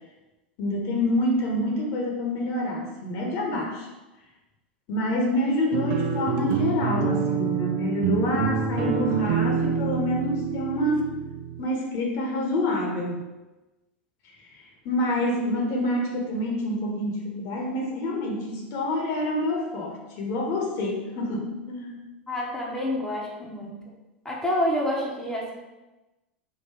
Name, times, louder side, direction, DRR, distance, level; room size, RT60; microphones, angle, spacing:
voice 1, 0.6-3.9 4.9-11.1 11.6-13.2 14.8-22.0, left 1 dB, 50° left, 0 dB, 1.0 m, -27 dB
sound 1, 5.7-11.6, right 7 dB, 50° right, 0.5 m, -27 dB
voice 2, 22.3-23.7 24.2-25.5, left 1 dB, 5° left, -4 dB, 1.0 m, -28 dB
3.8 x 2.5 x 4.4 m, 1.1 s
figure-of-eight pair, 90°, 6 cm